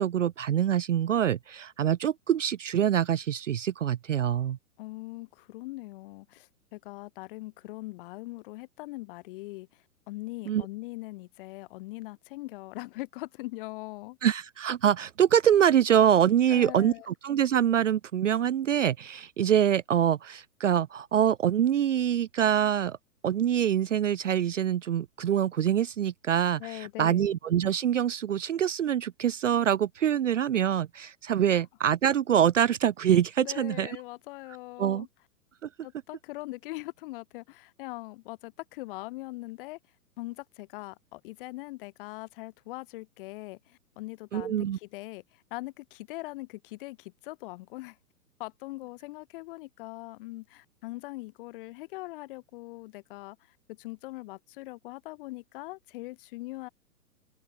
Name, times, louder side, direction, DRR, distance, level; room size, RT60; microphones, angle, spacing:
voice 1, 0.0-4.6 10.5-10.6 14.2-23.0 23.2-34.0 34.8-35.1 44.3-44.8, right 9 dB, 55° right, 0.6 m, -25 dB
voice 2, 4.8-14.2 16.5-17.1 26.6-27.3 31.5-31.6 33.4-35.1 35.8-39.8 40.2-48.0 48.4-56.7, left 21 dB, 35° left, 3.5 m, -41 dB
open air
figure-of-eight pair, 115°, 46 cm